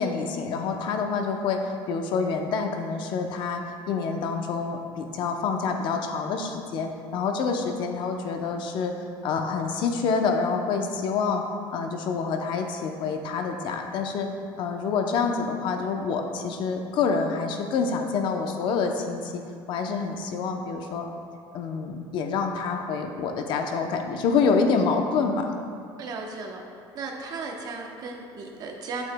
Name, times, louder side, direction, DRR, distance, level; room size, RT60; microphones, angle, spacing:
voice 1, 0.0-8.9 9.2-11.4 11.7-14.3 14.6-19.4 19.7-21.1 21.5-25.5, left 5 dB, 60° left, 4 dB, 0.7 m, -27 dB
voice 2, 26.0-26.6 26.9-29.0, right 4 dB, 45° right, 1 dB, 0.9 m, -35 dB
8.8 x 8.1 x 2.2 m, 2.3 s
cardioid pair, 135°, 9 cm